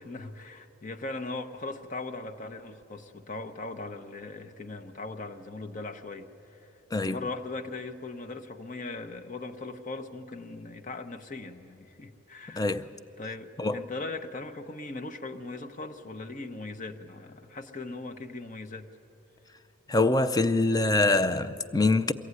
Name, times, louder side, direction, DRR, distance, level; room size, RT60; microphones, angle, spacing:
voice 1, 0.0-6.8 7.0-12.8 13.2-18.9, left 3 dB, 40° left, 1.0 m, -39 dB
voice 2, 12.5-12.9 13.6-13.8 19.9-22.1, left 2 dB, 20° left, 0.5 m, -24 dB
23.0 x 16.0 x 9.6 m
head